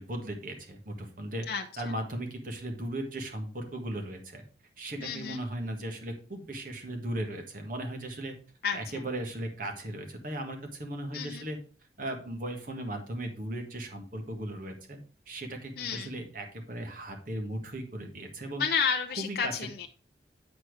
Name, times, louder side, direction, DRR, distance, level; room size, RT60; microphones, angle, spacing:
voice 1, 0.0-1.5 1.8-4.4 4.8-8.3 8.7-11.6 12.0-15.0 15.3-18.6 19.2-19.5, right 1 dB, 50° right, 4 dB, 1.6 m, -37 dB
voice 2, 5.0-5.4 8.6-9.0 11.1-11.5 15.8-16.1 18.6-19.9, left 6 dB, 60° left, 5 dB, 0.5 m, -31 dB
8.4 x 4.4 x 4.7 m, 0.40 s
head